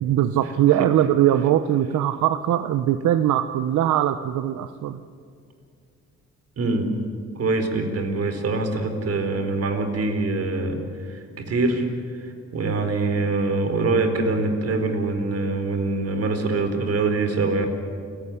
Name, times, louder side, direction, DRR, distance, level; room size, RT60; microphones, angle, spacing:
voice 1, 0.0-5.0, right 11 dB, 80° right, 11 dB, 0.9 m, -21 dB
voice 2, 6.6-6.9 7.4-11.9 12.2-17.7, right 3 dB, 55° right, 7 dB, 4.1 m, -24 dB
28.5 x 16.5 x 9.9 m, 2.3 s
cardioid pair, 90°, 30 cm